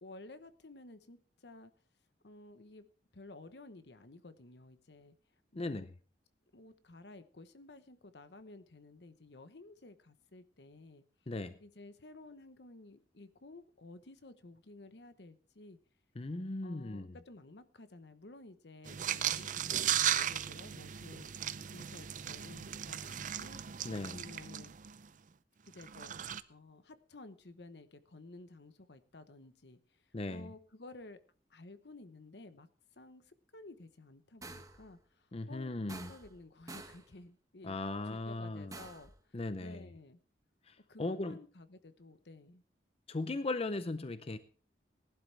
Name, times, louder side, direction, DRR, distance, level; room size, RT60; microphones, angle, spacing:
voice 1, 0.0-1.7 2.2-2.9 3.1-5.1 5.5-5.9 6.5-11.0 11.6-15.8 16.6-21.3 21.7-24.7 25.7-26.1 26.5-31.2 31.5-32.7 32.9-37.8 38.0-40.2 40.9-42.6, left 2 dB, 65° left, 12 dB, 1.0 m, -54 dB
voice 2, 5.6-5.9 11.3-11.5 16.2-17.1 23.8-24.2 30.1-30.5 35.3-36.1 37.6-38.8 39.3-39.8 40.7-41.4 43.1-44.4, left 2 dB, 35° left, 12 dB, 0.6 m, -38 dB
sound 1, 18.9-25.1 25.7-26.4, right 10 dB, 45° right, 0.6 m, -36 dB
sound 2, 34.4-34.9 35.9-36.4 36.7-37.1 38.7-39.2, right 3 dB, 20° right, 1.2 m, -49 dB
18.5 x 11.5 x 3.3 m, 0.41 s
head